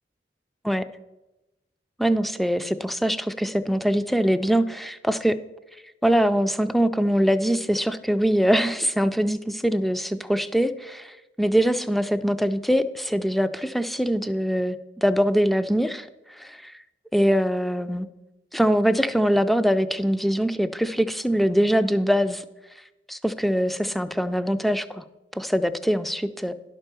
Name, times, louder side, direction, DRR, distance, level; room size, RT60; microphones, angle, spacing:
voice 1, 2.0-5.4 6.0-11.0 11.4-16.7 17.1-18.1 18.5-22.4 23.1-25.0 25.3-26.5, equal, ahead, 11 dB, 0.3 m, -23 dB
11.0 x 4.5 x 6.7 m, 1.0 s
head